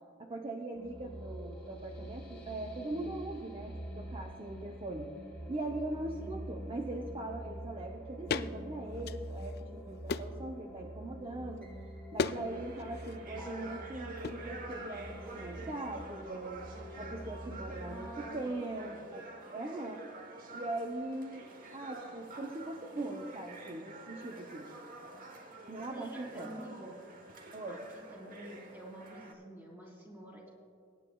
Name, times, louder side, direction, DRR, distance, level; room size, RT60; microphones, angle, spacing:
voice 1, 0.2-5.1 5.5-11.7 12.1-16.7 17.0-19.3 19.5-20.0 20.5-21.4 21.7-24.7 25.7-26.5 27.5-27.8, right 2 dB, 25° right, 2 dB, 0.7 m, -40 dB
sound 1, 0.7-18.2, equal, 5° left, 2.7 m, -46 dB
sound 2, 8.3-8.5 8.9-9.6 10.1-10.4 12.2-12.4 12.7-13.2 14.2-14.4, left 5 dB, 50° left, 0.4 m, -35 dB
sound 3, 12.2-29.3, right 2 dB, 45° right, 1.1 m, -48 dB
voice 2, 17.8-18.5 18.8-19.0 25.9-27.0 27.7-30.5, equal, 10° right, -2 dB, 3.0 m, -49 dB
22.0 x 9.9 x 2.3 m, 2.4 s
head